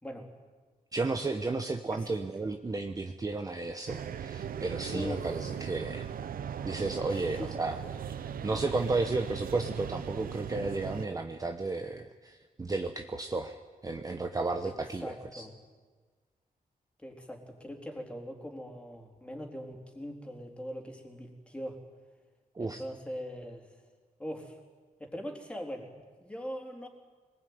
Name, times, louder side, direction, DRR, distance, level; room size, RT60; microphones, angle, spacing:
voice 1, 0.9-6.1 6.6-7.8 8.4-13.5 13.8-15.4 22.5-22.8, right 3 dB, 25° right, 6 dB, 1.0 m, -33 dB
sound 1, 3.9-11.1, right 8 dB, 85° right, 0.9 m, -38 dB
voice 2, 4.9-5.3 7.1-7.5 14.6-14.7 15.0-15.5 17.0-21.8 22.6-23.8 24.2-24.6 25.0-25.9 26.2-26.9, equal, 10° left, 2 dB, 3.7 m, -41 dB
23.0 x 20.0 x 9.5 m, 1.4 s
wide cardioid pair, 135°, 15 cm